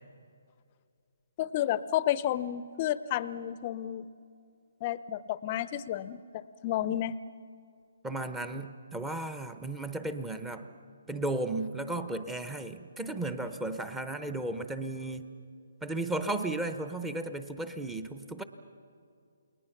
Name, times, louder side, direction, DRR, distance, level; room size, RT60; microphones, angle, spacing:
voice 1, 1.4-4.1 4.8-7.2, left 12 dB, 30° left, 16 dB, 0.6 m, -31 dB
voice 2, 8.0-10.7 11.1-15.3 15.8-18.4, right 2 dB, 5° right, 9 dB, 0.9 m, -34 dB
29.0 x 20.0 x 6.0 m, 2.4 s
figure-of-eight pair, 145°, 0 cm